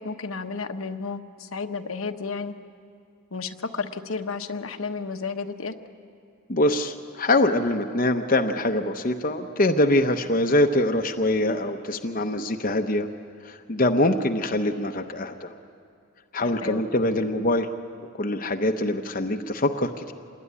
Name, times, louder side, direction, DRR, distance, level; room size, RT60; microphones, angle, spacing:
voice 1, 0.0-2.5 3.3-5.8 16.6-16.8, left 4 dB, 75° left, 6 dB, 1.1 m, -32 dB
voice 2, 6.5-13.1 13.4-15.5 16.3-17.7 18.2-20.1, left 1 dB, 40° left, 4 dB, 0.9 m, -24 dB
26.5 x 21.0 x 9.8 m, 2.4 s
head